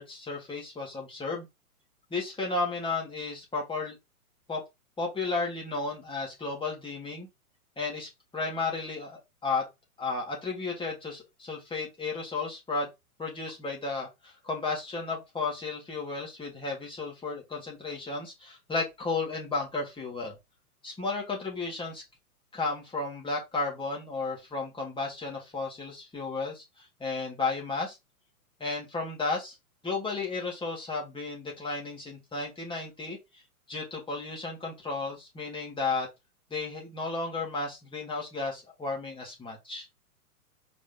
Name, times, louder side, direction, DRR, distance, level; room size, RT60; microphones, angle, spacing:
voice 1, 0.0-1.5 2.1-4.0 4.5-4.6 5.0-7.3 7.8-9.7 10.0-12.9 13.2-20.4 20.8-22.0 22.5-28.0 28.6-29.5 29.8-33.4 33.7-36.1 36.5-39.9, left 3 dB, 10° left, 3.2 m, -33 dB
5.2 x 5.1 x 3.7 m
hypercardioid pair, 125°, 45 cm